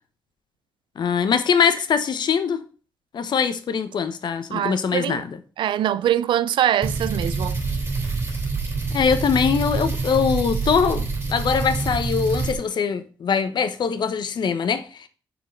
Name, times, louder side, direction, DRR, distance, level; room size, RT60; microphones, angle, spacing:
voice 1, 1.0-2.6 3.1-5.4 8.9-15.1, left 6 dB, 65° left, 1.0 m, -22 dB
voice 2, 4.5-5.2 5.6-7.6, right 11 dB, 80° right, 0.5 m, -23 dB
sound 1, 6.8-12.5, right 4 dB, 30° right, 3.2 m, -26 dB
7.3 x 4.6 x 5.3 m
cardioid pair, 80°, 8 cm